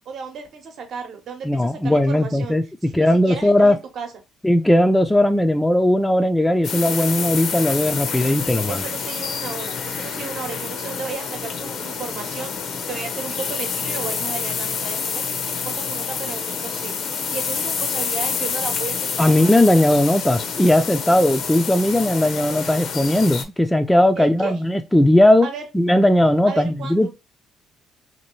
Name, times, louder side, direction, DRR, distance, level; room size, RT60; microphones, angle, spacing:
voice 1, 0.1-2.6 2.9-4.1 8.7-19.4 24.1-24.6 25.4-25.6 26.4-27.1, right 6 dB, 65° right, 0.8 m, -34 dB
voice 2, 1.4-2.6 2.9-3.8 4.4-8.8 19.2-25.5 25.7-27.1, left 1 dB, 10° left, 0.3 m, -17 dB
sound 1, 6.6-23.4, left 6 dB, 65° left, 0.6 m, -28 dB
2.7 x 2.6 x 2.9 m
supercardioid pair, 80°, 0 cm